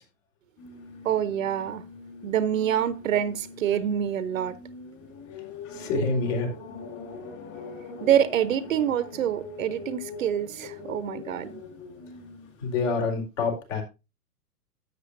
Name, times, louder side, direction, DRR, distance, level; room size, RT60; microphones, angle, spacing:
sound 1, 0.6-13.2, left 4 dB, 35° left, 5.3 m, -43 dB
voice 1, 1.0-1.8 2.2-4.6 8.0-11.6, right 10 dB, 60° right, 1.0 m, -26 dB
voice 2, 5.7-6.5 12.6-13.8, left 4 dB, 50° left, 4.3 m, -26 dB
13.0 x 8.3 x 2.6 m
hypercardioid pair, 115°, 46 cm